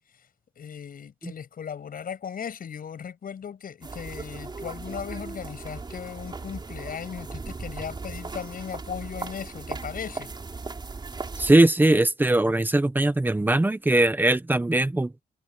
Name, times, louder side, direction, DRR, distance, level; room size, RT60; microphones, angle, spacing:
voice 1, 0.6-10.3, left 7 dB, 70° left, 7.4 m, -37 dB
sound 1, 3.8-11.5, right 3 dB, 30° right, 4.5 m, -37 dB
voice 2, 11.4-15.2, right 2 dB, 10° right, 1.1 m, -21 dB
wide cardioid pair, 175°, 16 cm